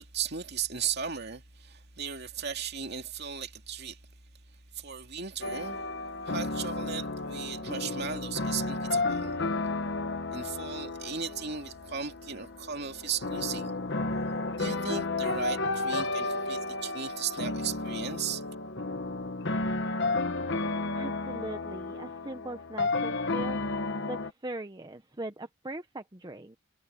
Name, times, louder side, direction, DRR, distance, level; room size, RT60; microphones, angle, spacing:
voice 1, 0.0-4.0 4.7-5.8 6.2-9.4 10.3-13.7 14.6-18.4, right 7 dB, 50° right, 2.6 m, -36 dB
sound 1, 5.4-24.3, left 2 dB, 55° left, 1.3 m, -32 dB
voice 2, 20.9-23.6 24.1-26.6, right 2 dB, 20° right, 0.8 m, -40 dB
head